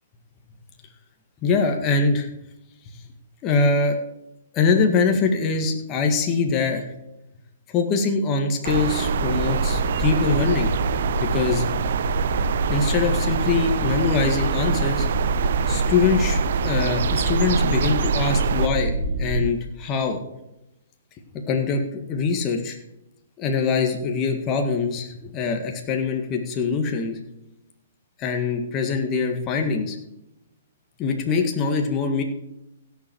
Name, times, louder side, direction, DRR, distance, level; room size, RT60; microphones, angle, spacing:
voice 1, 1.4-2.3 2.9-3.1 3.4-4.0 4.5-6.9 7.7-10.7 11.2-11.7 12.7-15.1 15.7-20.2 21.3-22.8 23.4-27.2 28.2-30.0 31.0-32.2, left 4 dB, 30° left, 3 dB, 1.9 m, -23 dB
sound 1, 8.6-19.4, right 2 dB, 40° right, 3.2 m, -25 dB
sound 2, 8.6-18.7, right 9 dB, 60° right, 0.5 m, -28 dB
16.5 x 7.2 x 4.7 m, 0.88 s
hypercardioid pair, 130°, 0 cm